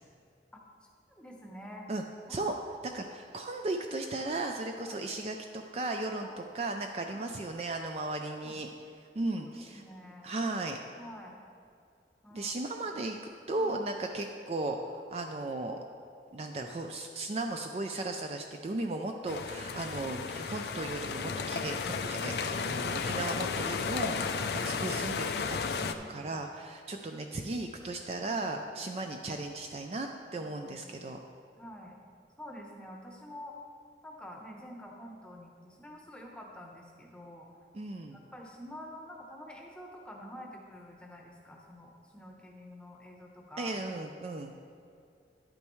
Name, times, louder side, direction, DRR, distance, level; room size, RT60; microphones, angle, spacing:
voice 1, 1.2-1.9 2.3-2.5 4.8-5.0 6.2-6.5 7.0-7.3 8.4-8.6 9.4-10.3 11.0-11.4 12.2-12.6 12.8-13.0 13.6-13.7 25.8-26.3 28.6-29.0 30.3-31.1 31.6-32.0 32.4-33.6 34.0-37.5 38.1-43.8, equal, 5° left, -1 dB, 0.9 m, -48 dB
voice 2, 2.8-8.7 9.2-9.8 10.2-10.8 12.3-15.8 16.3-31.2 37.7-38.2 43.6-44.5, right 2 dB, 35° right, 4 dB, 0.4 m, -36 dB
sound 1, 19.3-25.9, left 5 dB, 65° left, 0.4 m, -33 dB
10.5 x 8.7 x 3.1 m, 2.5 s
head